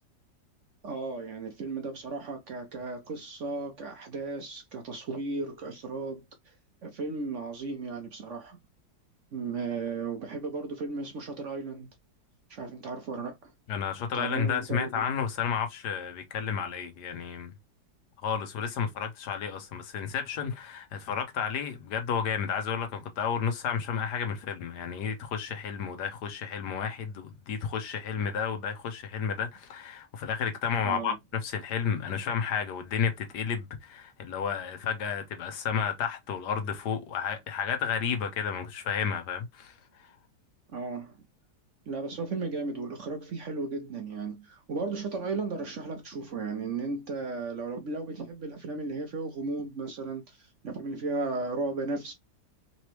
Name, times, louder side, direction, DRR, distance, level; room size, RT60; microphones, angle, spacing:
voice 1, 0.8-6.6 6.8-8.6 9.3-11.9 12.5-13.5 14.1-15.0 30.8-31.2 40.7-41.2 41.9-52.1, right 3 dB, 60° right, 0.9 m, -35 dB
voice 2, 13.7-17.5 18.2-40.1, left 7 dB, 75° left, 1.4 m, -32 dB
3.9 x 3.1 x 3.0 m
omnidirectional pair, 1.8 m